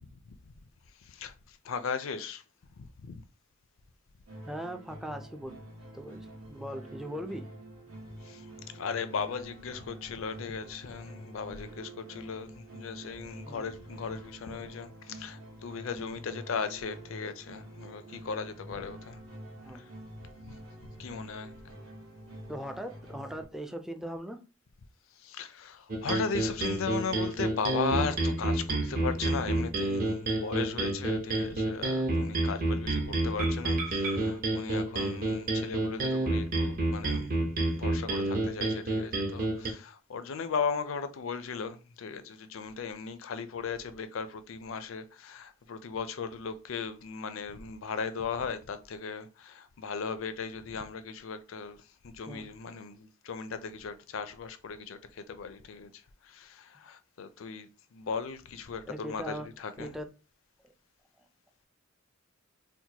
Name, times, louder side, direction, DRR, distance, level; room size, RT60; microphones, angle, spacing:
voice 1, 1.0-2.4 2.8-3.2 8.2-19.2 19.7-19.8 20.4-20.6 21.0-21.5 25.2-51.8 52.0-55.9 56.2-59.9, left 5 dB, 70° left, 0.4 m, -37 dB
sound 1, 4.3-23.4, right 1 dB, 75° right, 1.3 m, -47 dB
voice 2, 4.5-5.6 5.9-7.5 13.4-13.7 19.6-19.9 22.5-24.4 52.3-52.5 58.9-59.5 59.8-60.1, equal, ahead, 0.3 m, -39 dB
sound 2, 25.9-39.7, right 2 dB, 45° right, 0.8 m, -29 dB
4.4 x 2.1 x 2.8 m
head